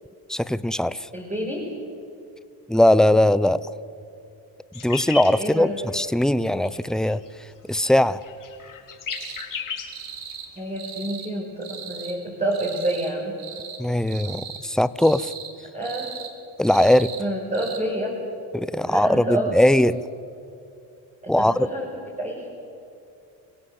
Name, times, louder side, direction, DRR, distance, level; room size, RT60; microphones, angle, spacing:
voice 1, 0.3-1.1 2.7-3.6 4.8-7.2 7.7-8.2 13.8-15.3 16.6-17.1 18.5-20.0 21.3-21.7, left 1 dB, ahead, 16 dB, 0.7 m, -20 dB
voice 2, 1.1-1.7 5.4-5.8 10.6-13.3 15.7-16.1 16.8-16.9 17.2-18.2 18.8-19.5 21.2-21.9 22.2-22.5, right 1 dB, 15° right, -3 dB, 6.4 m, -28 dB
sound 1, 4.7-5.3 5.9-6.2 6.5-6.8 7.0-7.3 7.5-10.6, left 6 dB, 40° left, 4.6 m, -34 dB
sound 2, 9.1-9.5 9.9-10.5 10.8-11.3 11.6-12.1 12.5-13.1 13.4-13.8 14.1-14.6 15.0-15.5 15.8-16.3 16.7-17.2 17.5-17.8, right 7 dB, 65° right, 3.8 m, -38 dB
30.0 x 17.0 x 8.2 m, 2.6 s
supercardioid pair, 80°, 48 cm